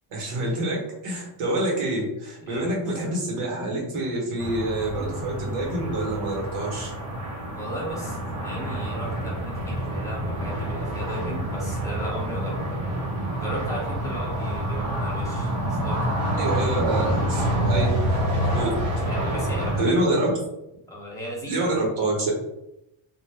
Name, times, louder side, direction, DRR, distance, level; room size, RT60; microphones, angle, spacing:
voice 1, 0.1-6.9 16.4-18.0 18.4-18.7 19.8-20.3 21.5-22.3, right 1 dB, 90° right, -2 dB, 1.3 m, -27 dB
sound 1, 4.4-19.8, right 1 dB, 35° right, 0.9 m, -27 dB
voice 2, 7.5-12.6 13.4-15.6 15.8-16.2 19.1-20.2 20.9-21.8, equal, 5° left, -5 dB, 0.6 m, -35 dB
2.6 x 2.1 x 3.3 m, 0.87 s
cardioid pair, 170°, 49 cm